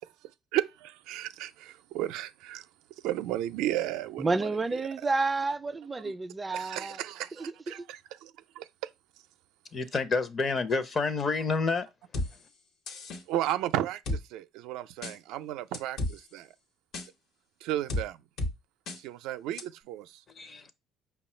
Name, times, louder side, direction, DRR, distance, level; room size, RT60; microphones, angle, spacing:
voice 1, 0.5-2.6 3.0-4.6 6.0-6.1 6.5-8.3 8.6-8.9 13.3-16.5 17.6-18.2 19.0-20.2, right 13 dB, 85° right, 0.4 m, -34 dB
voice 2, 4.2-7.0 7.4-7.9, right 3 dB, 20° right, 0.4 m, -30 dB
voice 3, 9.7-11.9 20.3-20.7, left 4 dB, 35° left, 0.7 m, -29 dB
sound 1, 12.1-12.3 12.9-13.2 14.1-14.2 15.0-15.1 15.7-16.1 16.9-17.1 17.9-18.0 18.4-18.5 18.9-19.0 19.6-19.7, left 2 dB, 65° left, 1.0 m, -31 dB
5.4 x 2.3 x 4.3 m
cardioid pair, 110°, 0 cm